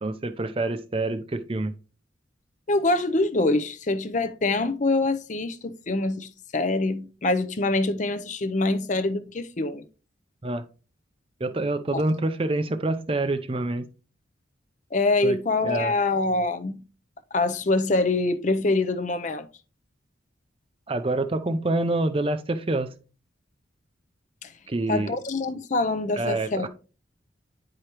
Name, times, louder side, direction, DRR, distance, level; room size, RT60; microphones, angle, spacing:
voice 1, 0.0-1.7 10.4-10.6 11.4-13.9 15.2-15.4 15.6-15.9 20.9-22.9 24.7-25.2 26.2-26.7, right 2 dB, 30° right, 0.5 m, -26 dB
voice 2, 2.7-9.9 11.9-12.0 14.9-16.8 17.3-19.5 24.4-24.5 24.9-26.7, left 2 dB, 40° left, 0.5 m, -25 dB
9.6 x 4.9 x 3.0 m
head